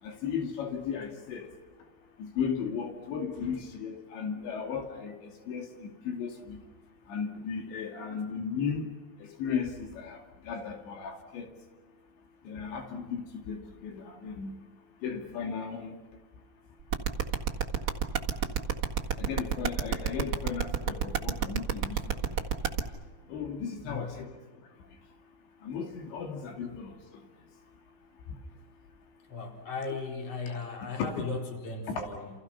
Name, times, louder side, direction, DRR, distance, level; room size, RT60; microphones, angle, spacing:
voice 1, 0.0-1.5 1.8-1.9 2.2-6.6 7.1-8.9 9.2-11.5 12.4-14.5 15.0-16.0 19.2-22.5 23.3-24.3 25.6-27.2 28.3-28.4 31.9-32.0, left 6 dB, 80° left, 3 dB, 4.8 m, -36 dB
sound 1, 16.9-22.8, right 8 dB, 50° right, 1.5 m, -28 dB
voice 2, 23.8-24.3 26.6-26.7 29.3-32.3, left 4 dB, 35° left, 2 dB, 4.9 m, -37 dB
29.0 x 29.0 x 5.8 m, 1.3 s
omnidirectional pair, 5.1 m